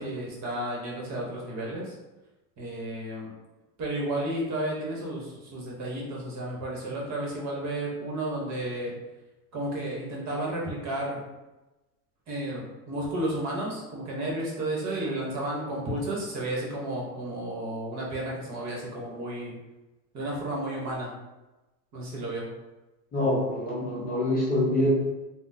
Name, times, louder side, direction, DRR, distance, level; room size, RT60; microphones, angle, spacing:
voice 1, 0.0-1.9 2.6-3.3 3.8-8.9 9.5-11.2 12.3-19.5 20.1-21.1 21.9-22.5, right 1 dB, 35° right, -3 dB, 1.0 m, -32 dB
voice 2, 23.1-24.9, left 1 dB, 20° left, -6 dB, 0.6 m, -25 dB
3.6 x 2.1 x 2.6 m, 1.1 s
supercardioid pair, 120°, 46 cm